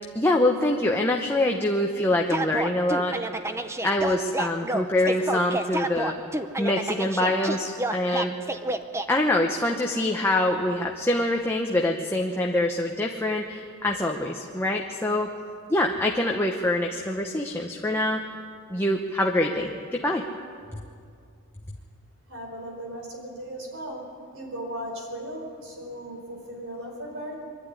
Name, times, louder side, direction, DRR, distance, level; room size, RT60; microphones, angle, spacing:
voice 1, 0.1-3.2 3.8-6.2 6.6-8.3 9.1-15.3 15.7-18.2 18.7-20.2, left 1 dB, 10° left, 1 dB, 1.0 m, -25 dB
sound 1, 2.3-9.1, right 1 dB, 15° right, 0.7 m, -29 dB
voice 2, 22.3-24.0 24.3-27.4, equal, 65° right, 0 dB, 5.0 m, -37 dB
23.5 x 12.0 x 9.7 m, 2.3 s
head